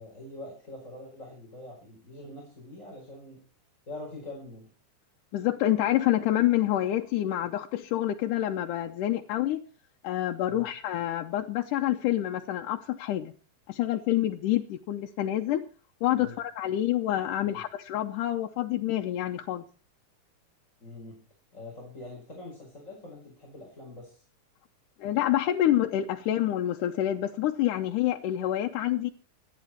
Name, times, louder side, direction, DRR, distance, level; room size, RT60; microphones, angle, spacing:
voice 1, 0.0-3.4 3.9-4.7 10.4-10.7 16.1-16.4 17.4-17.5 20.8-21.2 21.5-24.2, left 2 dB, 25° left, -2 dB, 5.4 m, -44 dB
voice 2, 5.3-9.6 10.0-13.3 13.7-15.6 16.0-19.6 25.0-29.1, left 13 dB, 90° left, 3 dB, 2.4 m, -27 dB
26.5 x 9.5 x 4.5 m, 0.37 s
omnidirectional pair, 3.5 m